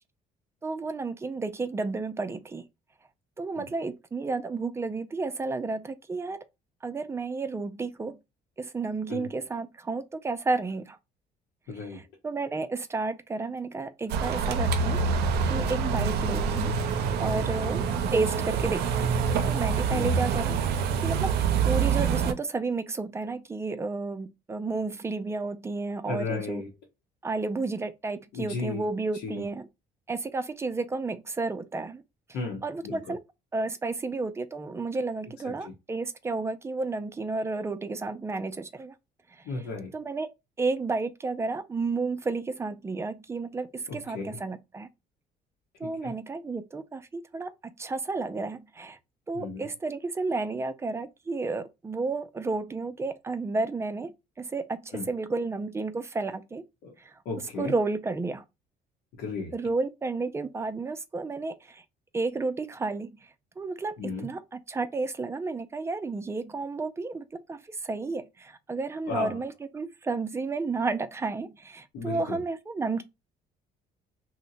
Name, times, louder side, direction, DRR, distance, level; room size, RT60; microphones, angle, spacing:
voice 1, 0.6-2.6 3.4-6.4 6.8-8.2 8.6-11.0 11.9-15.0 15.5-16.8 17.2-17.8 18.1-19.1 19.5-20.6 21.0-21.3 21.6-26.6 27.2-29.7 30.1-32.0 32.6-33.2 33.5-38.9 39.9-40.3 40.6-44.9 45.8-49.0 49.3-56.6 57.0-57.2 57.6-58.4 59.5-61.8 62.1-63.1 63.6-73.0, right 3 dB, 15° right, 0.4 m, -32 dB
voice 2, 11.7-12.0 17.3-17.8 19.9-20.1 26.1-26.7 28.3-28.9 29.1-29.4 32.3-33.1 35.4-35.7 39.4-39.9 43.9-44.4 45.8-46.1 49.3-49.7 54.9-55.1 56.8-56.9 57.2-57.7 59.2-59.6 64.0-64.3 69.1-69.4 71.9-72.4, left 4 dB, 80° left, 0.8 m, -35 dB
sound 1, 14.1-22.3, right 6 dB, 75° right, 0.5 m, -26 dB
2.8 x 2.1 x 3.9 m
cardioid pair, 110°, 17 cm